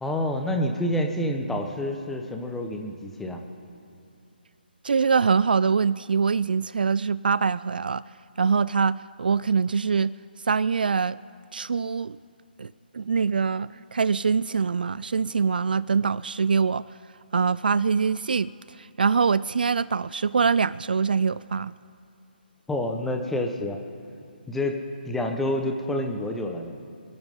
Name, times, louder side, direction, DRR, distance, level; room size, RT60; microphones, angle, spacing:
voice 1, 0.0-3.4 22.7-23.8 24.5-26.8, left 1 dB, 5° left, 3 dB, 1.2 m, -28 dB
voice 2, 4.8-8.0 8.4-10.1 10.5-11.2 11.5-12.2 12.6-16.8 17.3-18.5 18.8-21.7, right 5 dB, 60° right, 18 dB, 0.3 m, -24 dB
27.0 x 11.0 x 3.9 m, 2.6 s
figure-of-eight pair, 140°, 6 cm